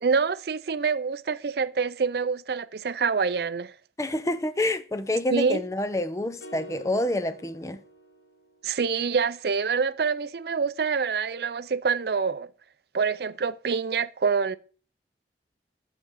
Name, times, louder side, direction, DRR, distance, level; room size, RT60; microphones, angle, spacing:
voice 1, 0.0-3.7 5.3-5.6 8.6-12.5 12.9-14.6, right 5 dB, 65° right, 0.5 m, -26 dB
voice 2, 4.0-7.8, left 1 dB, 15° left, 0.5 m, -28 dB
sound 1, 6.4-8.7, right 1 dB, 80° left, 1.9 m, -47 dB
8.2 x 4.9 x 7.1 m
head